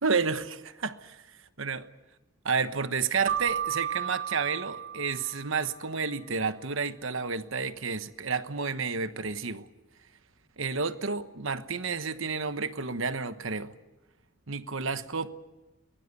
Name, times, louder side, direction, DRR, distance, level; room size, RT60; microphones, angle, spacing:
voice 1, 0.0-1.2 1.6-1.9 2.4-9.7 10.6-13.7 14.5-15.3, right 5 dB, 60° right, 1.2 m, -31 dB
Keyboard (musical), 3.3-5.8, right 9 dB, 35° right, 4.2 m, -33 dB
23.0 x 21.5 x 8.3 m
head